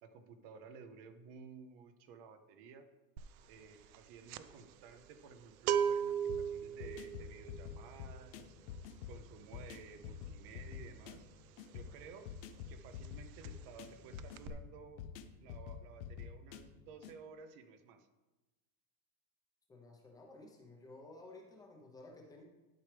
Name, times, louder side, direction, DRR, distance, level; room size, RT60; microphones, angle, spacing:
voice 1, 0.0-2.9 3.5-8.6 9.1-11.3 11.7-12.3 12.7-15.0 15.4-18.1, right 5 dB, 40° right, 9 dB, 0.6 m, -54 dB
sound 1, 3.2-3.4 3.7-12.3 12.5-12.8 13.0-13.9 14.1-14.5, right 8 dB, 85° right, 0.6 m, -38 dB
sound 2, 6.3-17.2, left 8 dB, 45° left, 0.5 m, -48 dB
voice 2, 19.7-22.4, left 2 dB, 10° left, 0 dB, 0.7 m, -54 dB
12.0 x 4.7 x 3.3 m, 1.1 s
supercardioid pair, 170°, 42 cm